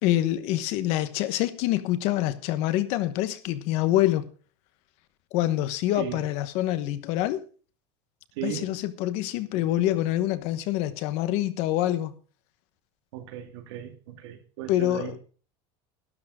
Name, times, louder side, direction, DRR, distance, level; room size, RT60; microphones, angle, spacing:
voice 1, 0.0-4.3 5.3-7.4 8.4-12.1 14.7-15.2, left 14 dB, 50° left, 1.1 m, -26 dB
voice 2, 8.4-8.8 13.1-15.2, right 11 dB, 80° right, 2.4 m, -36 dB
12.5 x 11.5 x 4.9 m
cardioid pair, 180°, 14 cm